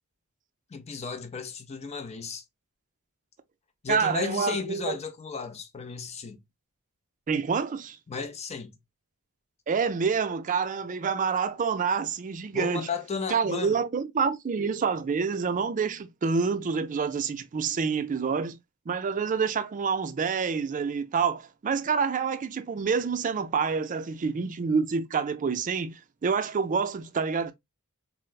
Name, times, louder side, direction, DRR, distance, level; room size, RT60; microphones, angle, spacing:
voice 1, 0.7-2.4 3.8-6.4 8.1-8.8 12.5-13.8, left 5 dB, 30° left, 0.5 m, -34 dB
voice 2, 3.9-5.0 7.3-8.0 9.7-12.9 13.3-18.6 18.9-27.5, right 5 dB, 35° right, 0.4 m, -27 dB
4.4 x 2.0 x 2.2 m
head